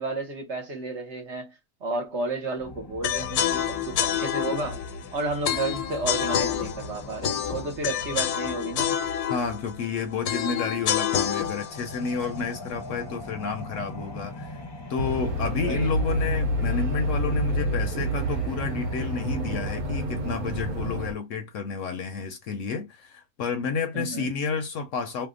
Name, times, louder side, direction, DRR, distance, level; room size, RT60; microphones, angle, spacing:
voice 1, 0.0-1.5 1.8-4.8 5.1-9.0 15.6-15.9 23.9-24.3, right 3 dB, 55° right, 1.1 m, -32 dB
sound 1, 2.6-19.7, left 1 dB, 40° left, 0.3 m, -42 dB
sound 2, 3.0-13.1, left 9 dB, 85° left, 1.1 m, -28 dB
voice 2, 9.3-14.6 14.9-25.3, left 5 dB, 65° left, 0.8 m, -30 dB
sound 3, 15.0-21.1, equal, 80° right, 1.1 m, -28 dB
2.7 x 2.1 x 3.6 m
omnidirectional pair, 1.6 m